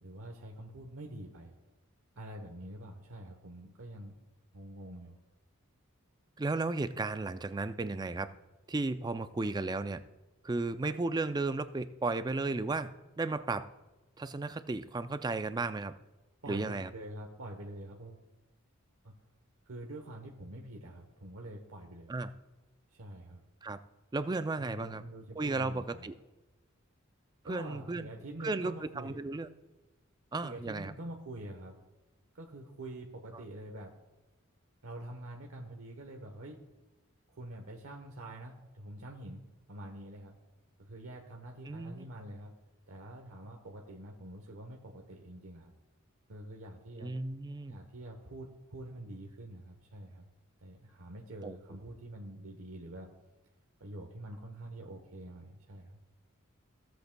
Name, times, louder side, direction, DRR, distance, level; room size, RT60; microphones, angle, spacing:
voice 1, 0.0-1.5 2.2-4.1 4.5-5.2 16.4-18.2 19.0-19.1 19.7-22.1 22.9-23.4 24.6-26.1 27.4-29.2 30.4-31.7 32.3-33.9 34.8-36.6 37.3-39.4 39.7-40.4 40.8-42.5 42.9-45.7 46.3-47.1 47.7-50.3 50.6-53.1 53.8-56.0, right 1 dB, 70° right, 1 dB, 1.0 m, -46 dB
voice 2, 6.4-8.3 8.7-10.0 10.4-12.9 13.2-13.7 14.2-15.9 16.5-16.9 22.1-22.3 23.6-23.8 24.1-25.0 25.4-26.1 27.5-28.1 28.4-29.5 30.3-30.9 41.7-42.1 47.0-47.8 51.4-51.6, right 3 dB, 20° right, 12 dB, 0.3 m, -34 dB
16.0 x 8.0 x 2.2 m, 1.1 s
head